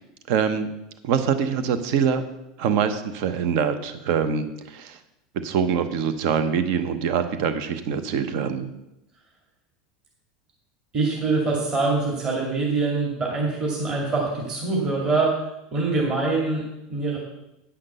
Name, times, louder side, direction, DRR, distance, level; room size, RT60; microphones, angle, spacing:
voice 1, 0.3-0.7 1.0-2.3 2.6-5.0 5.3-8.7, right 7 dB, 60° right, 10 dB, 0.9 m, -24 dB
voice 2, 10.9-15.5 15.7-17.2, right 3 dB, 30° right, -2 dB, 2.3 m, -24 dB
9.9 x 5.9 x 6.7 m, 0.89 s
supercardioid pair, 140°, 3 cm